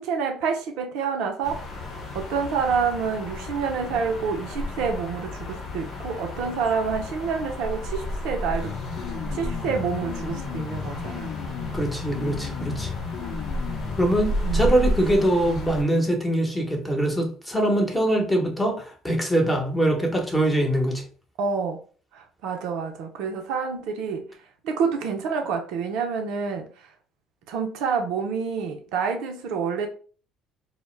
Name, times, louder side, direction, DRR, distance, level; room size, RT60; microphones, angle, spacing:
voice 1, 0.0-1.8 2.1-11.3 14.4-14.7 21.4-21.8 22.1-24.3 24.6-26.9 27.5-29.9, right 5 dB, 65° right, 4 dB, 0.4 m, -28 dB
sound 1, 1.4-15.8, left 1 dB, 50° left, 0.9 m, -32 dB
sound 2, 8.6-14.2, left 5 dB, 70° left, 0.5 m, -34 dB
voice 2, 11.7-12.9 14.0-21.0, right 1 dB, 10° left, 2 dB, 0.9 m, -23 dB
2.0 x 2.0 x 3.2 m, 0.40 s
hypercardioid pair, 60°, 0 cm